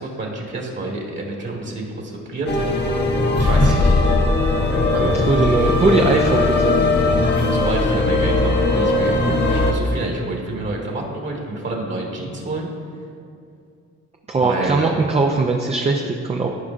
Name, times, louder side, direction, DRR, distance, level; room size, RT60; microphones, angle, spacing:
voice 1, 0.0-2.5 3.4-4.0 7.5-9.2 9.5-12.7 14.4-15.0, right 2 dB, 40° right, -2 dB, 1.5 m, -28 dB
sound 1, 2.5-9.7, left 2 dB, 35° left, 1.0 m, -18 dB
Wind instrument woodwind instrument, 3.8-6.8 7.1-10.6, right 3 dB, 60° right, 0.9 m, -37 dB
voice 2, 4.9-6.8 9.3-9.4 14.3-16.5, right 3 dB, 20° right, 1 dB, 0.5 m, -20 dB
14.5 x 4.9 x 2.5 m, 2.4 s
cardioid pair, 90°, 30 cm